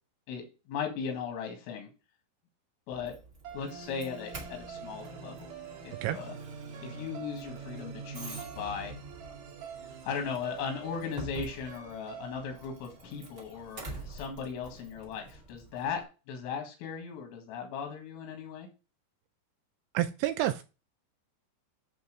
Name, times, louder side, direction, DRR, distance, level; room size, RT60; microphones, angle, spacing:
voice 1, 0.3-1.9 2.9-3.1 3.5-5.5 5.8-6.3 6.8-8.9 10.0-18.7, left 6 dB, 85° left, 3 dB, 4.4 m, -37 dB
Doorbell, 2.9-16.0, right 1 dB, 45° right, 1.2 m, -48 dB
sound 1, 3.4-13.7, right 6 dB, 60° right, 2.3 m, -45 dB
voice 2, 19.9-20.6, right 13 dB, 80° right, 10 dB, 2.8 m, -29 dB
11.0 x 4.0 x 6.6 m, 0.31 s
omnidirectional pair, 5.7 m